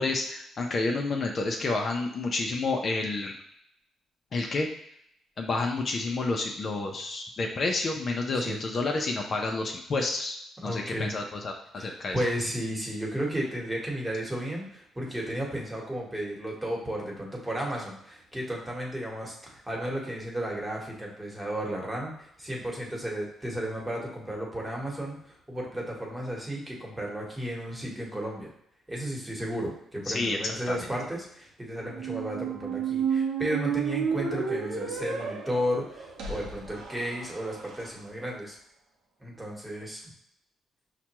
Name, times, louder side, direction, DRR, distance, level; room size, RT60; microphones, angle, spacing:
voice 1, 0.0-3.3 4.3-4.7 5.4-10.4 10.6-12.1 30.1-30.7, left 3 dB, 45° left, 2 dB, 0.5 m, -29 dB
voice 2, 10.6-11.2 11.8-28.5 28.9-38.6 39.2-40.1, equal, 10° right, -2 dB, 1.2 m, -33 dB
Squeak, 31.9-37.9, right 6 dB, 85° right, 0.7 m, -32 dB
5.6 x 2.2 x 3.0 m, 0.73 s
cardioid pair, 90°, 0 cm